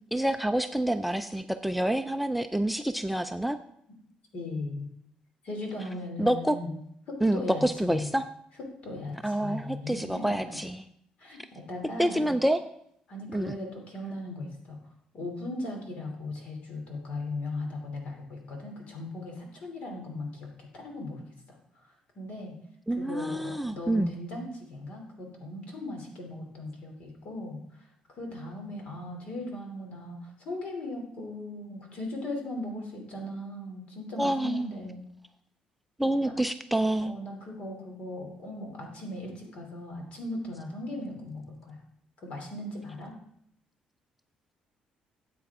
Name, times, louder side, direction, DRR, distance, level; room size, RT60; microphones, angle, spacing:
voice 1, 0.1-3.6 6.2-6.6 7.2-8.3 9.2-10.8 12.0-12.6 13.3-13.5 22.9-24.1 34.2-34.7 36.0-37.1, right 1 dB, ahead, 8 dB, 0.3 m, -27 dB
voice 2, 4.3-4.9 5.4-6.7 7.1-8.2 8.8-10.6 11.2-12.3 13.1-14.8 15.1-21.2 22.1-22.5 23.0-27.9 28.1-35.0 36.2-36.3 37.0-41.8 42.2-43.1, left 2 dB, 55° left, 2 dB, 2.8 m, -38 dB
13.5 x 8.3 x 3.6 m, 0.72 s
cardioid pair, 150°, 3 cm